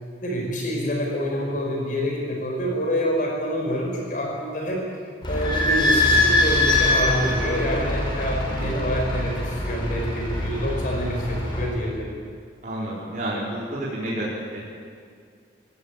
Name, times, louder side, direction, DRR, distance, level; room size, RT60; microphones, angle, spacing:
voice 1, 0.2-4.8 5.3-12.1, equal, 45° left, -1 dB, 5.4 m, -27 dB
Idling / Squeak, 5.2-11.6, left 2 dB, 25° left, 5.2 m, -23 dB
voice 2, 12.6-14.3 14.5-14.7, right 1 dB, 45° right, -7 dB, 4.4 m, -30 dB
23.5 x 17.0 x 9.0 m, 2.1 s
head